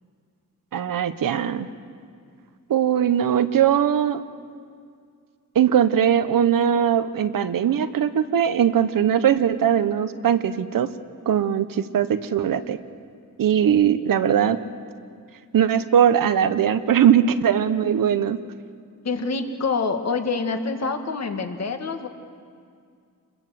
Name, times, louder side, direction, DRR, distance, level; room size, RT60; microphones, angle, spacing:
voice 1, 0.7-1.7 2.7-4.2 5.5-10.9 11.3-12.8 13.4-14.6 15.5-18.4, right 9 dB, 80° right, 11 dB, 1.2 m, -20 dB
voice 2, 19.0-22.1, left 4 dB, 50° left, 6 dB, 2.0 m, -26 dB
29.5 x 22.0 x 7.7 m, 2.2 s
wide cardioid pair, 135°, 33 cm